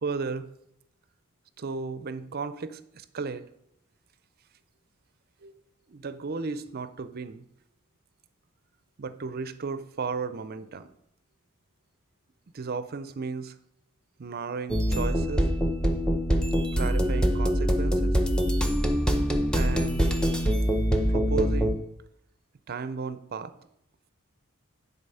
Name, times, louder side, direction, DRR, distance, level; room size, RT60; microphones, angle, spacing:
voice 1, 0.0-0.5 1.6-3.5 5.4-5.5 5.9-7.4 9.0-10.9 12.5-13.5 14.2-15.5 16.7-18.2 19.5-20.1 21.1-21.9 22.7-23.5, right 4 dB, 45° right, 13 dB, 0.5 m, -34 dB
sound 1, 14.7-21.8, equal, 5° left, 0.7 m, -24 dB
10.5 x 4.1 x 5.5 m, 0.78 s
head